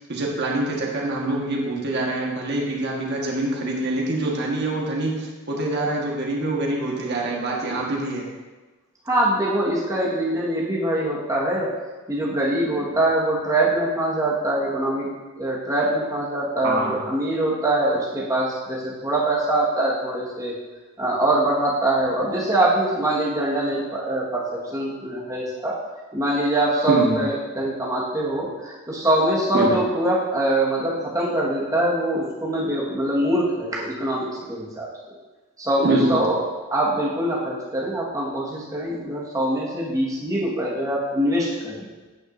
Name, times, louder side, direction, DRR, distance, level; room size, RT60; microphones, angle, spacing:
voice 1, 0.0-8.3 16.6-16.9 26.9-27.2 29.5-29.7 35.8-36.2, right 2 dB, 50° right, -2 dB, 1.5 m, -25 dB
voice 2, 7.6-7.9 9.0-11.7 12.1-15.1 15.4-20.5 21.0-25.8 26.1-34.9 35.6-36.4 36.7-41.9, right 1 dB, 15° right, -5 dB, 1.5 m, -23 dB
10.0 x 8.9 x 2.7 m, 1.3 s
head